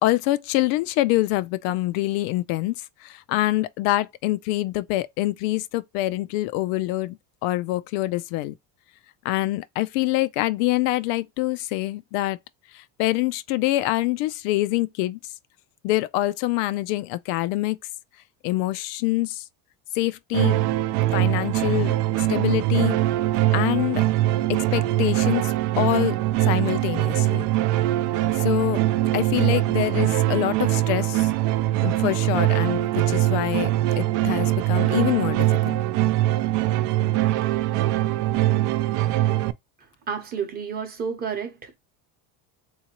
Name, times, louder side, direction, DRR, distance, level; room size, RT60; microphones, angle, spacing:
voice 1, 0.0-7.2 7.4-8.5 9.2-12.4 12.7-15.2 15.8-17.8 18.4-19.4 19.9-20.6 21.1-23.0 23.5-24.0 24.5-27.5 28.3-28.8 29.1-31.3 31.8-33.7 34.0-35.8, left 17 dB, 80° left, 0.5 m, -25 dB
sound 1, 20.3-39.5, right 15 dB, 70° right, 0.5 m, -22 dB
voice 2, 40.1-41.8, right 6 dB, 25° right, 0.8 m, -30 dB
3.7 x 2.8 x 2.8 m
cardioid pair, 175°, 39 cm